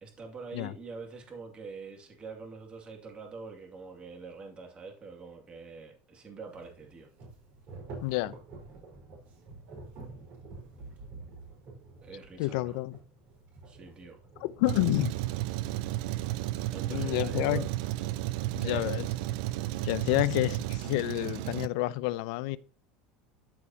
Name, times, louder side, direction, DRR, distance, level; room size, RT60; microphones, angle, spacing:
voice 1, 0.0-7.1 12.0-12.8 13.6-14.2 16.7-17.7 18.6-18.9, right 4 dB, 25° right, 2.4 m, -44 dB
sound 1, 6.5-14.7, right 3 dB, 50° right, 4.6 m, -48 dB
voice 2, 8.0-8.3 12.4-13.0 14.4-15.1 16.9-17.7 18.5-19.1 19.8-22.6, left 19 dB, 75° left, 0.7 m, -29 dB
Truck, 14.7-21.7, right 15 dB, 75° right, 0.5 m, -33 dB
13.5 x 4.8 x 2.8 m
supercardioid pair, 120°, 4 cm